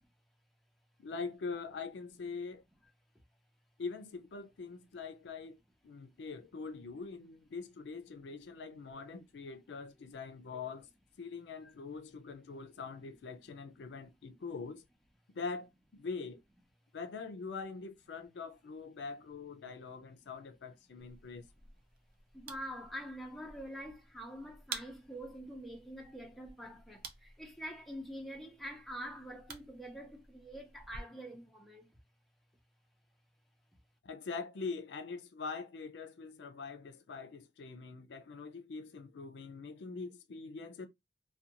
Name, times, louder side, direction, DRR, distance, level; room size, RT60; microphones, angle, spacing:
voice 1, 1.0-2.6 3.8-5.6 5.8-10.9 11.2-14.8 15.3-16.4 16.9-21.5 34.0-40.9, left 4 dB, 75° left, 0.4 m, -43 dB
sound 1, 21.0-31.0, right 5 dB, 55° right, 0.5 m, -52 dB
voice 2, 22.3-31.9, equal, ahead, 0.5 m, -45 dB
2.4 x 2.2 x 2.7 m
head